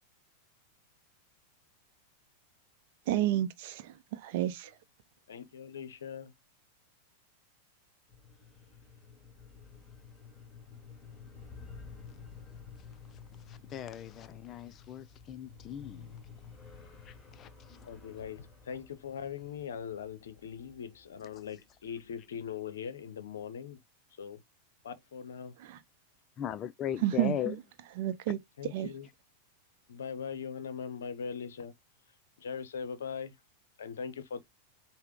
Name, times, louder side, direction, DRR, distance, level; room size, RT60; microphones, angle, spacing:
voice 1, 3.1-4.7 25.6-25.8 27.0-27.6 28.0-28.9, right 13 dB, 50° right, 0.6 m, -31 dB
voice 2, 5.3-6.3 17.9-23.8 24.2-24.4 24.8-25.6 28.6-29.1 29.9-31.7 32.4-33.3 33.8-34.4, left 7 dB, 65° left, 0.7 m, -40 dB
sound 1, 8.1-22.1, left 5 dB, 15° left, 1.8 m, -52 dB
voice 3, 13.5-16.1 17.1-17.5 26.4-27.5, left 10 dB, 30° left, 0.3 m, -38 dB
5.6 x 2.1 x 3.6 m
figure-of-eight pair, 90°, 0 cm